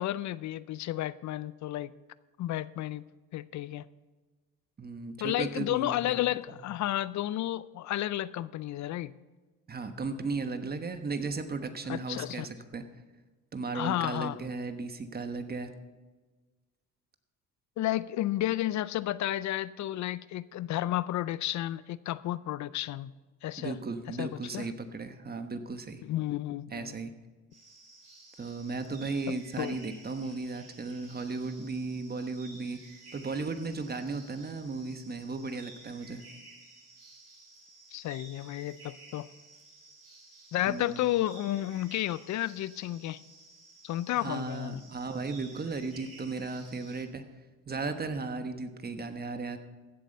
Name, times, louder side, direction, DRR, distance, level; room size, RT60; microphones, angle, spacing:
voice 1, 0.0-1.9 2.4-3.0 3.3-3.9 5.2-9.1 11.9-12.5 13.7-14.4 17.8-23.1 23.4-23.7 24.2-24.7 26.0-26.9 29.3-29.8 37.9-39.3 40.5-43.2 43.8-44.8, left 14 dB, 70° left, 18 dB, 0.5 m, -32 dB
voice 2, 4.8-6.1 9.7-12.8 13.5-15.7 23.6-26.0 26.7-27.1 28.4-32.8 33.1-36.2 40.7-41.0 44.2-47.2 47.7-49.6, right 3 dB, 30° right, 8 dB, 1.2 m, -35 dB
sound 1, 27.5-47.0, right 3 dB, 50° right, 4.2 m, -54 dB
15.5 x 7.6 x 5.5 m, 1.3 s
cardioid pair, 90°, 30 cm